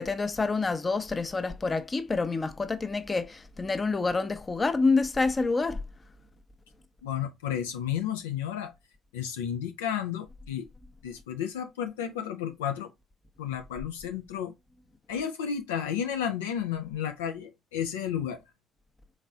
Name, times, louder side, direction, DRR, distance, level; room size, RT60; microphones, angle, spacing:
voice 1, 0.0-5.8, left 3 dB, 30° left, 0.7 m, -27 dB
voice 2, 7.0-8.7 9.1-10.7 11.0-12.9 13.4-14.5 15.1-18.4, left 9 dB, 80° left, 0.4 m, -32 dB
4.0 x 3.3 x 2.4 m
hypercardioid pair, 50°, 0 cm